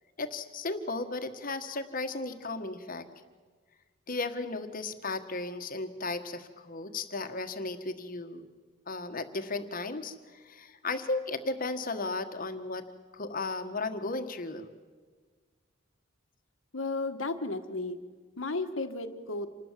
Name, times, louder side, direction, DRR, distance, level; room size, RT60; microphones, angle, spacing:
voice 1, 0.2-3.0 4.1-8.5 8.9-12.8 13.1-14.7, left 3 dB, 45° left, 8 dB, 1.5 m, -35 dB
voice 2, 16.7-18.0 18.4-19.5, left 3 dB, 75° left, 8 dB, 1.6 m, -33 dB
27.5 x 19.5 x 7.6 m, 1.5 s
head